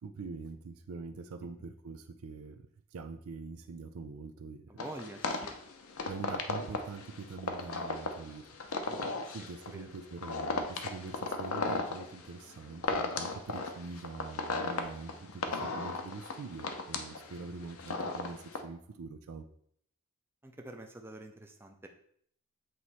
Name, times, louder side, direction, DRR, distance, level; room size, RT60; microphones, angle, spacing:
voice 1, 0.0-4.8 6.1-8.4 9.3-19.4, right 4 dB, 75° right, 7 dB, 0.4 m, -44 dB
voice 2, 4.7-5.6 8.9-9.2 9.7-9.9 20.4-21.9, right 1 dB, 10° right, 3 dB, 0.5 m, -46 dB
sound 1, 4.8-18.6, left 3 dB, 75° left, 0.7 m, -36 dB
7.8 x 3.1 x 4.1 m, 0.64 s
head